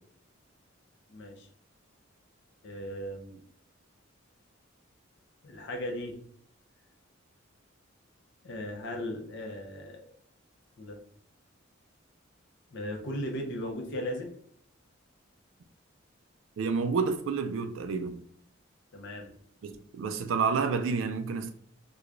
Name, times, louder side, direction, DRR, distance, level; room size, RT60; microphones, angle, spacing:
voice 1, 1.1-1.5 2.6-3.4 5.4-6.2 8.4-10.0 10.8-11.0 12.7-14.3 18.9-19.4, left 1 dB, 60° left, 0.6 m, -37 dB
voice 2, 16.6-18.2 19.6-21.5, right 5 dB, 70° right, 0.4 m, -29 dB
4.7 x 2.2 x 2.4 m
head